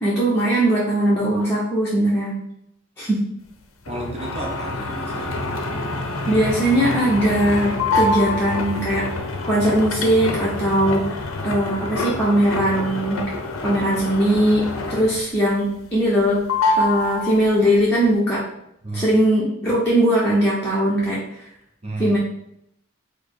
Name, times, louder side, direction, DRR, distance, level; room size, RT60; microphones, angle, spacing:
voice 1, 0.0-2.4 3.0-3.2 6.3-9.0 9.4-11.1 11.4-13.2 13.6-16.4 16.8-18.4 18.9-21.2 22.0-22.2, right 1 dB, 10° left, -7 dB, 0.8 m, -20 dB
sound 1, 3.9-15.3 15.7-16.2 16.5-17.8, left 2 dB, 80° left, 0.6 m, -26 dB
voice 2, 3.9-5.4 18.8-19.1 21.8-22.2, right 2 dB, 30° right, -1 dB, 0.7 m, -32 dB
4.7 x 2.2 x 4.7 m, 0.78 s
head